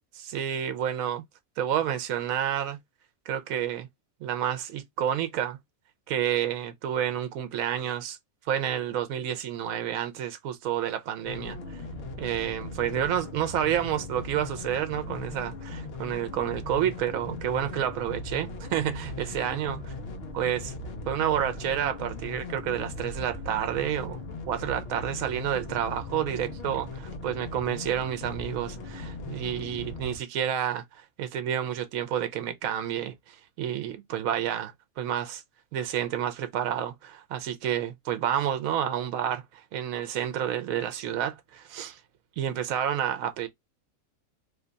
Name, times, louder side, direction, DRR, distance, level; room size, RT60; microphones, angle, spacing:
voice 1, 0.2-1.2 1.6-2.8 3.3-3.9 4.2-5.6 6.1-8.2 8.5-11.8 12.2-19.8 20.4-20.7 21.1-24.2 24.5-35.4 35.7-42.0 42.4-43.5, right 10 dB, 80° right, 1.0 m, -29 dB
sound 1, 11.3-30.2, left 3 dB, 55° left, 0.8 m, -39 dB
3.0 x 2.2 x 3.8 m
omnidirectional pair, 1.4 m